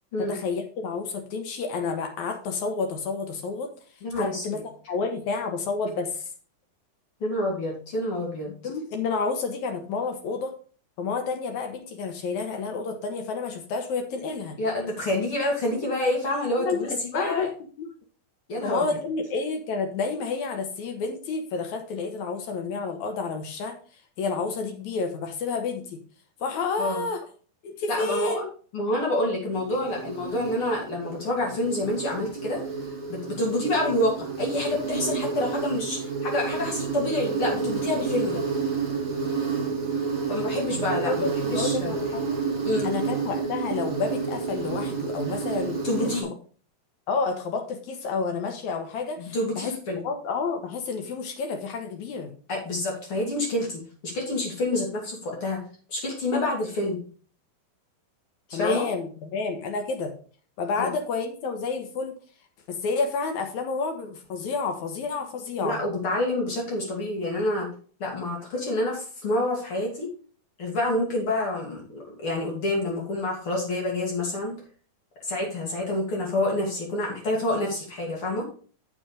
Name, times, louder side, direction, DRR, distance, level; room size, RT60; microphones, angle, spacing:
voice 1, 0.2-3.7 4.2-4.6 4.9-6.3 8.6-10.5 11.0-14.6 16.6-17.5 17.8-17.9 18.6-23.8 24.2-26.0 26.4-27.2 27.6-28.5 41.0-42.4 42.8-46.1 47.1-49.7 50.0-52.3 58.5-60.1 60.6-62.1 62.7-65.8, left 4 dB, 65° left, 5 dB, 2.1 m, -30 dB
voice 2, 4.0-4.4 7.2-8.5 14.6-17.5 18.5-19.0 26.8-27.0 27.9-28.4 28.7-32.6 33.1-38.4 40.3-41.9 42.6-42.9 45.8-46.3 49.2-50.0 52.5-55.6 55.9-57.0 58.5-58.9 60.8-60.9 65.6-67.7 68.0-70.1 70.6-74.6 75.3-78.5, left 1 dB, 40° left, -1 dB, 2.6 m, -28 dB
Insect, 29.5-46.2, right 5 dB, 25° right, 3.5 m, -30 dB
7.8 x 6.0 x 5.0 m, 0.41 s
omnidirectional pair, 4.2 m